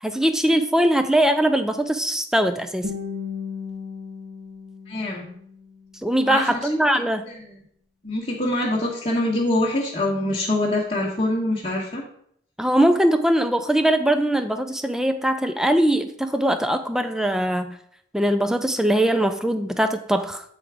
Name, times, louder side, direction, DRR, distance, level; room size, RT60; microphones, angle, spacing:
voice 1, 0.0-2.9 6.0-7.3 12.6-17.8 18.1-20.4, right 1 dB, 5° right, 8 dB, 0.4 m, -21 dB
Guitar, 2.8-5.8, left 5 dB, 60° right, 1.5 m, -35 dB
voice 2, 4.9-5.3 6.2-6.6 7.3-7.4 8.0-12.0, left 1 dB, 30° left, -7 dB, 1.3 m, -24 dB
8.8 x 3.4 x 4.9 m, 0.67 s
head